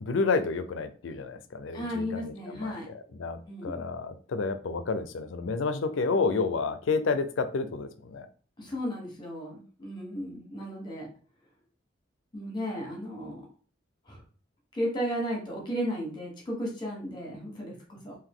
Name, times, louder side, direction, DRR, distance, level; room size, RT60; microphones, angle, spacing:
voice 1, 0.0-8.3, left 4 dB, 80° left, 11 dB, 0.5 m, -30 dB
voice 2, 1.7-2.9 3.5-3.8 8.6-11.1 12.3-13.5 14.1-14.2 14.7-18.1, equal, 25° left, -1 dB, 1.3 m, -34 dB
3.8 x 2.6 x 3.6 m, 0.41 s
head